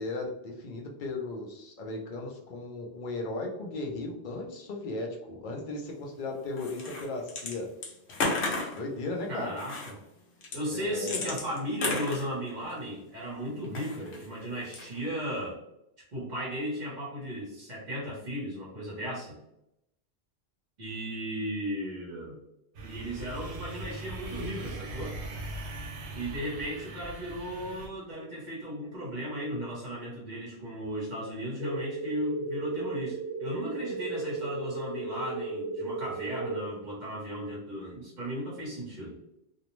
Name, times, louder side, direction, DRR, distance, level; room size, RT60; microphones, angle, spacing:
voice 1, 0.0-7.7 8.7-9.6 10.7-11.3, left 2 dB, 55° left, 1 dB, 0.6 m, -36 dB
sound 1, 6.6-7.5 7.8-8.8 9.6-9.9 10.4-12.8 13.6-14.3 14.6-15.1, left 3 dB, 75° left, 0.9 m, -33 dB
voice 2, 9.3-9.9 10.5-15.6 16.1-19.4 20.8-22.4 22.8-25.2 26.1-39.2, equal, 45° right, -6 dB, 0.9 m, -36 dB
sound 2, 22.7-27.9, right 2 dB, 85° right, 0.9 m, -40 dB
sound 3, 31.6-36.6, right 3 dB, 35° left, 1.2 m, -35 dB
2.5 x 2.0 x 2.9 m, 0.83 s
omnidirectional pair, 1.1 m